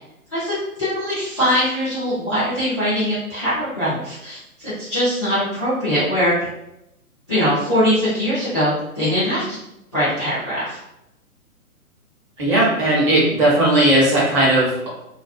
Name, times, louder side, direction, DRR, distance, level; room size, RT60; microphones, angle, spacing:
voice 1, 0.3-6.5 7.3-9.6 9.9-10.8, equal, 20° left, -14 dB, 0.4 m, -22 dB
voice 2, 12.4-14.9, right 1 dB, 20° right, -7 dB, 0.7 m, -17 dB
2.4 x 2.1 x 2.4 m, 0.87 s
figure-of-eight pair, 135°, 44 cm